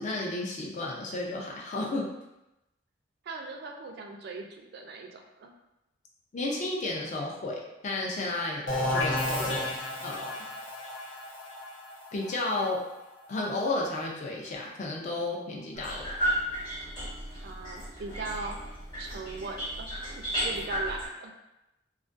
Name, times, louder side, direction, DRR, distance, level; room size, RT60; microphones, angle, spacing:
voice 1, 0.0-2.1 6.3-9.7 10.0-10.4 12.1-12.8 13.3-16.2, left 2 dB, 40° left, -1 dB, 0.4 m, -32 dB
voice 2, 3.2-5.5 17.4-18.6 19.0-21.3, right 3 dB, 55° right, 3 dB, 0.3 m, -39 dB
sound 1, 8.7-14.2, left 1 dB, 70° left, 0.7 m, -33 dB
sound 2, 15.8-21.1, equal, 25° left, 0.9 m, -34 dB
2.3 x 2.2 x 2.5 m, 0.92 s
head